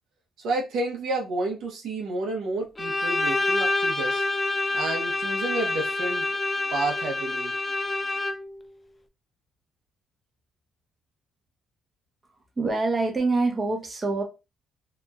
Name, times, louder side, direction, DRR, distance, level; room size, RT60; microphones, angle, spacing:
voice 1, 0.4-4.3 4.7-6.3 6.7-7.5, right 2 dB, 75° right, 0 dB, 0.8 m, -30 dB
Bowed string instrument, 2.8-8.6, left 2 dB, 20° left, 0.3 m, -27 dB
voice 2, 12.6-14.2, right 3 dB, 25° right, 2 dB, 0.7 m, -25 dB
2.9 x 2.6 x 2.3 m, 0.27 s
cardioid pair, 90°, 0 cm